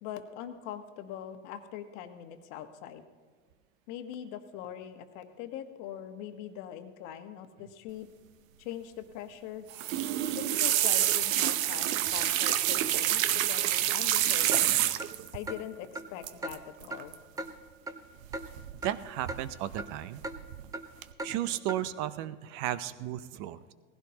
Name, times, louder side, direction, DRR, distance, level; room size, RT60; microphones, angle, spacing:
voice 1, 0.0-3.0 3.9-8.1 8.6-9.7 10.3-14.7 15.3-17.1, left 10 dB, 50° left, 7 dB, 1.3 m, -42 dB
sound 1, 9.7-15.3 16.2-16.6 16.8-17.1 18.3-18.9 19.2-19.8 20.2-20.6 21.0-21.1, right 12 dB, 75° right, 0.8 m, -27 dB
Clock, 14.5-14.6 15.0-15.1 15.5-15.6 16.0-16.1 16.4-16.6 16.9-17.0 17.4-17.5 17.9-18.0 18.3-18.5 18.8-18.9 19.3-19.4 19.8-19.9 20.2-20.4 20.7-20.9 21.2-21.3 21.7-21.8, right 2 dB, 10° right, 0.6 m, -37 dB
voice 2, 18.8-20.2 21.2-23.7, right 12 dB, 45° right, 14 dB, 0.7 m, -34 dB
19.0 x 16.0 x 2.9 m, 1.5 s
supercardioid pair, 125°, 40 cm